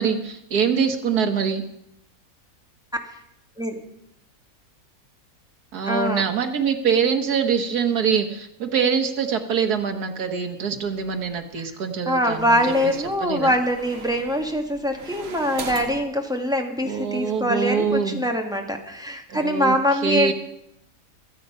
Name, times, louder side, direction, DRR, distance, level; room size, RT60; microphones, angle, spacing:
voice 1, 0.0-1.6 5.7-12.9 13.2-13.5 16.8-18.2 19.3-20.3, right 6 dB, 85° right, 6 dB, 1.9 m, -24 dB
voice 2, 5.8-6.2 12.1-20.3, equal, 5° right, 3 dB, 1.6 m, -23 dB
sound 1, 10.8-11.4 12.1-16.1, right 5 dB, 45° right, 1.2 m, -40 dB
23.5 x 8.2 x 5.5 m, 0.79 s
omnidirectional pair, 1.6 m